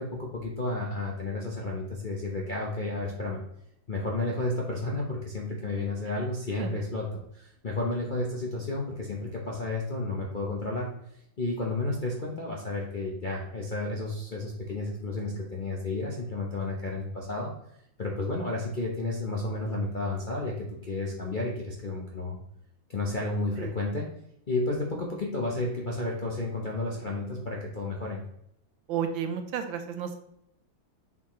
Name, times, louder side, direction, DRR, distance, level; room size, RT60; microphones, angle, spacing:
voice 1, 0.0-3.4 3.9-10.9 11.4-17.5 18.0-22.4 22.9-24.1 24.5-28.2, left 2 dB, 45° left, -3 dB, 0.6 m, -32 dB
voice 2, 28.9-30.2, right 8 dB, 80° right, 7 dB, 1.5 m, -32 dB
7.3 x 4.1 x 3.1 m, 0.75 s
omnidirectional pair, 2.2 m